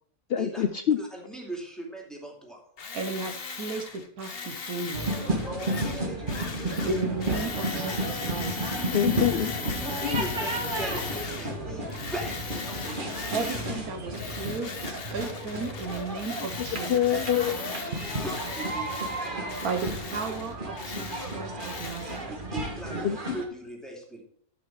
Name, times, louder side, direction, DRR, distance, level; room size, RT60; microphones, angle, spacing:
voice 1, 0.3-1.0 8.9-9.5 10.0-10.2 16.6-17.7 23.0-23.4, left 9 dB, 75° left, 10 dB, 0.5 m, -26 dB
voice 2, 1.0-2.6 5.1-6.9 9.8-13.3 17.5-19.5 22.3-24.2, right 1 dB, ahead, -1 dB, 2.5 m, -40 dB
Tools, 2.8-11.6 11.9-13.8 14.1-22.2, left 5 dB, 40° left, 1.1 m, -38 dB
voice 3, 2.9-5.2 6.8-8.7 13.3-16.9 19.6-22.3, right 3 dB, 70° right, 6 dB, 1.5 m, -34 dB
sound 1, 4.9-23.4, right 1 dB, 35° right, 1.7 m, -33 dB
Livestock farm animals working animals, 7.0-15.3, equal, 15° right, 2.7 m, -43 dB
12.0 x 5.9 x 4.7 m, 0.62 s
omnidirectional pair, 1.6 m